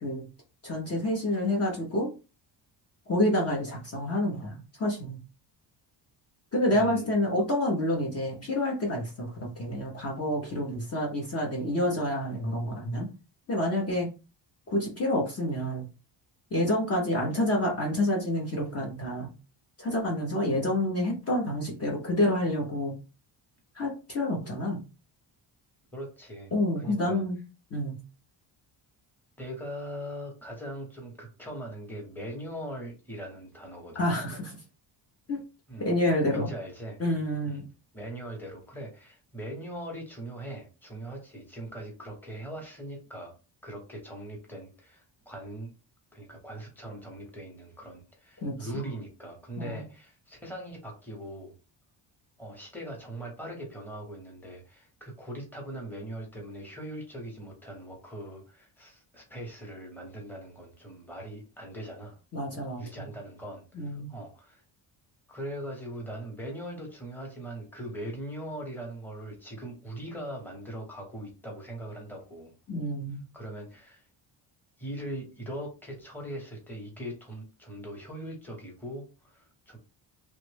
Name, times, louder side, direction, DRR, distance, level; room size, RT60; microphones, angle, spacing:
voice 1, 0.6-2.1 3.1-5.2 6.5-13.1 13.5-14.1 14.7-15.9 16.5-19.3 19.8-22.9 23.7-24.8 26.5-27.4 27.7-28.0 33.9-34.6 35.3-35.4 35.8-36.5 37.0-37.6 48.4-48.8 49.6-49.8 62.3-63.1 63.8-64.1 72.7-73.2, left 1 dB, 30° left, -1 dB, 0.9 m, -28 dB
voice 2, 6.7-7.1 25.9-27.2 29.4-34.2 35.7-35.9 36.3-37.0 37.5-37.6 37.9-43.3 43.6-45.7 46.1-51.5 52.4-62.2 62.8-64.6 65.3-72.5 73.3-74.0 74.8-79.8, right 1 dB, 5° left, -1 dB, 1.0 m, -41 dB
3.1 x 2.4 x 3.3 m, 0.31 s
cardioid pair, 145°, 45 cm